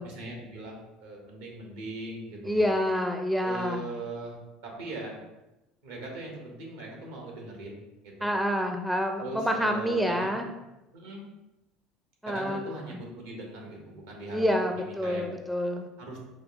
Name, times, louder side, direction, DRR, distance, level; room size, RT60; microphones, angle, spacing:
voice 1, 0.0-2.7 3.4-4.4 4.6-5.2 5.8-8.3 9.2-10.5 10.9-11.2 12.3-14.5 14.8-15.2 16.0-16.2, right 2 dB, 80° right, -1 dB, 1.0 m, -40 dB
voice 2, 2.5-3.8 8.2-10.5 12.2-12.6 14.3-15.9, equal, 5° right, 4 dB, 0.4 m, -27 dB
4.9 x 2.3 x 2.5 m, 1.0 s
hypercardioid pair, 75°, 0 cm